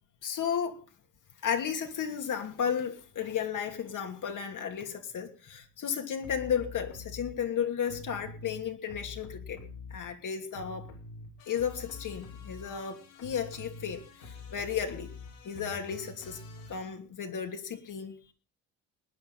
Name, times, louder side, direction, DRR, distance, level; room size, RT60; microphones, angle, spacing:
voice 1, 0.2-0.8 1.4-9.6 9.9-10.9 11.5-15.1 15.4-16.4 16.7-18.3, left 8 dB, 50° left, 2.9 m, -34 dB
sound 1, 6.2-7.3 7.8-10.2 10.5-16.9, left 3 dB, 75° left, 6.0 m, -46 dB
20.0 x 9.9 x 5.6 m
hypercardioid pair, 65°, 40 cm